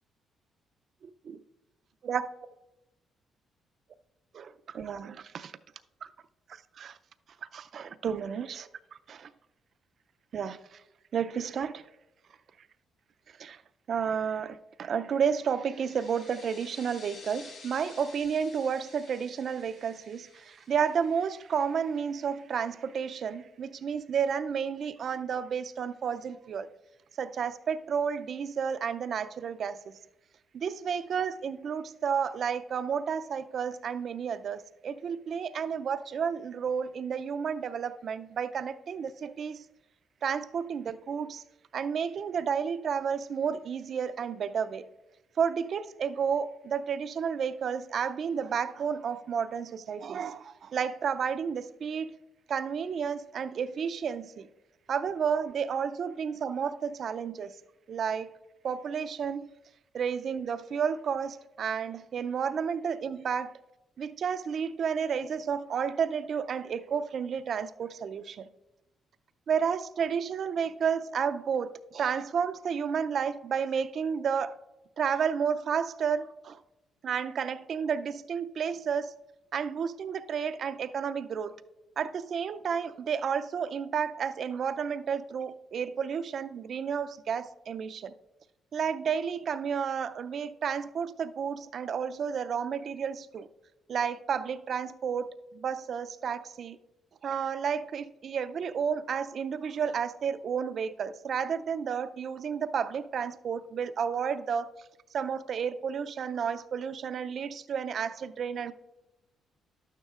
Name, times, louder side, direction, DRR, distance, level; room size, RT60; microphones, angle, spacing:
voice 1, 4.3-5.5 6.8-6.9 7.5-8.7 9.1-9.3 10.3-10.8 11.1-11.8 13.4-13.6 13.9-26.7 27.2-30.0 30.5-39.6 40.2-41.4 41.7-44.8 45.4-52.1 52.5-54.5 54.9-57.6 57.9-58.3 58.6-59.5 59.9-63.5 64.0-68.5 69.5-74.5 75.0-76.6 77.0-79.1 79.5-81.5 82.0-88.1 88.7-93.5 93.9-96.8 97.2-104.7 105.1-108.7, right 7 dB, 55° right, 0.4 m, -31 dB
sound 1, 15.4-21.7, left 4 dB, 60° left, 1.4 m, -52 dB
11.5 x 9.3 x 2.4 m
cardioid pair, 90°, 0 cm